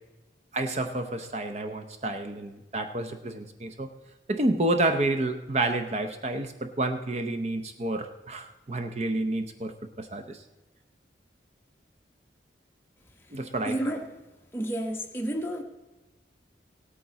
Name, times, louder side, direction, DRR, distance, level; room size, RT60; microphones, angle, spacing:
voice 1, 0.5-3.9 4.3-10.4 13.3-13.8, right 2 dB, 35° right, 8 dB, 0.6 m, -29 dB
voice 2, 13.6-14.0 14.5-15.6, right 1 dB, 15° left, 2 dB, 1.0 m, -30 dB
17.5 x 8.7 x 4.0 m, 1.1 s
head